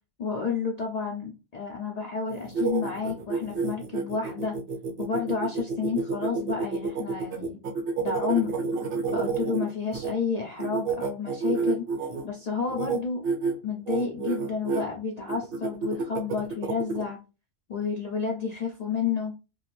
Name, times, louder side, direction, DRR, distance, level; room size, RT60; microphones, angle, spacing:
voice 1, 0.2-4.6 5.0-7.6 8.0-8.5 9.1-11.8 12.2-13.2 13.6-17.2 17.7-19.3, left 5 dB, 65° left, 0 dB, 0.4 m, -30 dB
sound 1, 2.3-10.1 10.6-12.2 12.7-13.0 13.2-13.5 13.9-14.8 15.3-17.0, right 4 dB, 60° right, 0.7 m, -29 dB
2.4 x 2.3 x 3.0 m, 0.30 s
omnidirectional pair, 1.2 m